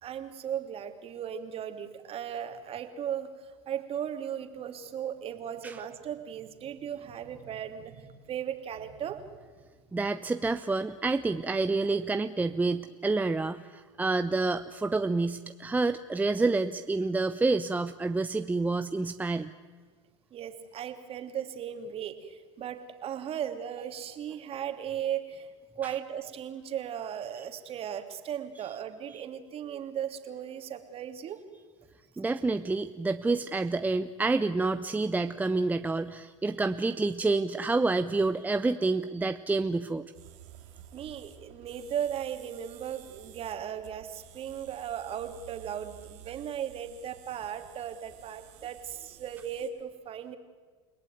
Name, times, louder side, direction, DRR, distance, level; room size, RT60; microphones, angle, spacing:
voice 1, 0.0-3.3 3.7-9.3 20.3-25.5 25.8-31.4 40.9-50.4, right 9 dB, 35° right, 7 dB, 2.8 m, -37 dB
voice 2, 9.9-19.5 25.8-25.9 32.2-40.0, right 3 dB, 10° right, 10 dB, 0.8 m, -28 dB
sound 1, 40.1-49.7, right 11 dB, 60° right, 4.1 m, -52 dB
30.0 x 18.5 x 9.3 m, 1.5 s
hypercardioid pair, 100°, 16 cm